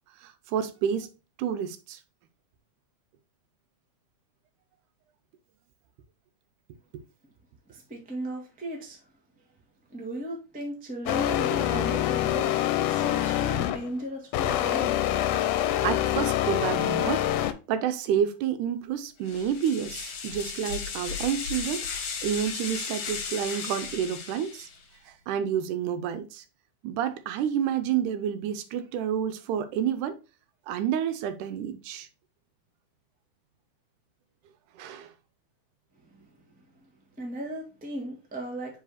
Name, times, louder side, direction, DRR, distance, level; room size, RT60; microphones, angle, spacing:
voice 1, 0.2-1.1 1.4-2.0 15.8-17.4 17.7-21.9 22.2-24.7 25.1-26.4 26.8-30.2 30.7-32.1 34.8-35.1, right 9 dB, 85° right, 2.2 m, -29 dB
voice 2, 7.7-9.0 9.9-14.9 36.0-36.3 37.2-38.8, equal, 10° right, 0.3 m, -36 dB
sound 1, 11.1-13.9 14.3-17.5, left 12 dB, 85° left, 2.1 m, -26 dB
sound 2, 19.3-24.8, left 6 dB, 60° left, 2.2 m, -35 dB
5.0 x 4.9 x 4.0 m
omnidirectional pair, 3.5 m